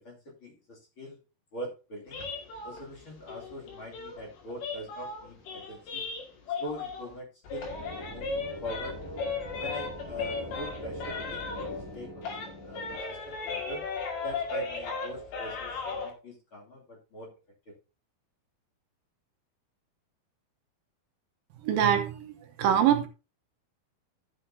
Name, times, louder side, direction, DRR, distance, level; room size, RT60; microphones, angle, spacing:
voice 1, 0.4-1.2 1.5-2.2 2.6-6.0 6.6-7.7 7.9-8.3 8.6-9.0 9.6-12.2 12.6-13.8 14.2-17.3, equal, 35° left, 3.0 m, -42 dB
sound 1, 2.1-7.2 7.4-11.9 12.2-16.1, left 4 dB, 80° left, 4.3 m, -36 dB
sound 2, 7.6-13.0, equal, 15° right, 0.8 m, -43 dB
voice 2, 21.6-23.1, right 9 dB, 75° right, 2.5 m, -24 dB
13.0 x 7.8 x 2.7 m
omnidirectional pair, 4.4 m